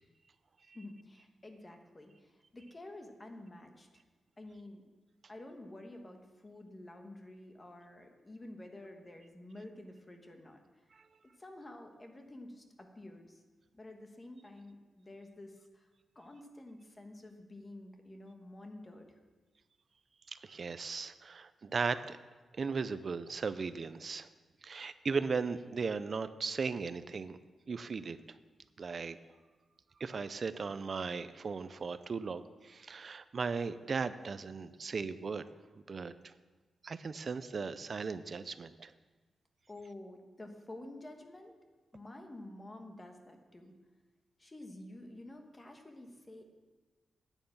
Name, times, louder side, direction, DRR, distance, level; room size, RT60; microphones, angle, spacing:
voice 1, 0.7-3.9 4.4-4.8 5.3-10.6 11.4-13.4 13.7-15.8 16.1-19.2 39.7-41.5 41.9-43.7 44.4-46.4, left 1 dB, 20° left, 4 dB, 1.2 m, -50 dB
voice 2, 20.3-22.2 22.6-24.3 24.6-27.4 27.7-28.2 28.8-29.2 30.0-35.5 35.9-36.3 36.8-38.9, right 5 dB, 40° right, 13 dB, 0.5 m, -37 dB
9.3 x 9.2 x 7.2 m, 1.3 s
wide cardioid pair, 175°, 0 cm